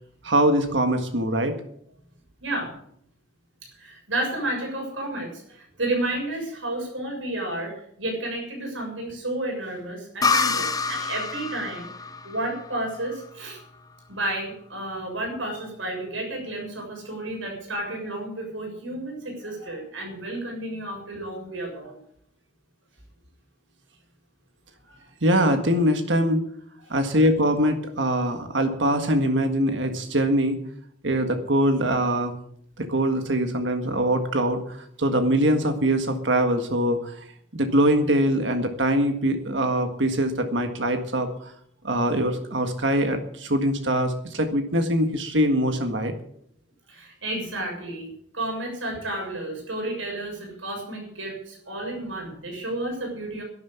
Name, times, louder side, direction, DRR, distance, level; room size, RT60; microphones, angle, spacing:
voice 1, 0.2-1.5 25.2-26.5 26.9-30.6 31.0-32.3 32.8-37.2 37.5-41.5 41.8-46.1, right 1 dB, 70° right, 6 dB, 1.7 m, -23 dB
voice 2, 2.4-2.7 3.6-11.9 12.2-13.6 14.1-22.0 24.8-25.0 26.9-27.0 46.9-53.4, right 1 dB, 85° right, 1 dB, 6.9 m, -31 dB
sound 1, 10.2-13.8, left 4 dB, 20° left, 0.8 m, -27 dB
12.0 x 11.0 x 8.2 m, 0.68 s
head